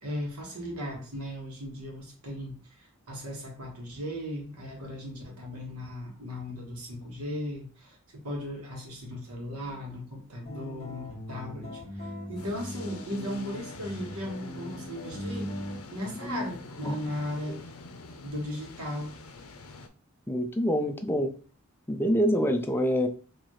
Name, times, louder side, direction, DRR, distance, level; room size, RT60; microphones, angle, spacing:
voice 1, 0.0-15.5 15.9-17.6 18.2-19.1, equal, 85° right, 0 dB, 1.4 m, -37 dB
sound 1, 10.5-15.8, left 1 dB, 30° left, 1.4 m, -40 dB
sound 2, 12.4-19.9, left 3 dB, 70° left, 0.6 m, -46 dB
voice 2, 20.3-21.3 21.9-23.1, equal, 10° left, 5 dB, 0.4 m, -26 dB
4.4 x 2.8 x 3.0 m, 0.38 s
head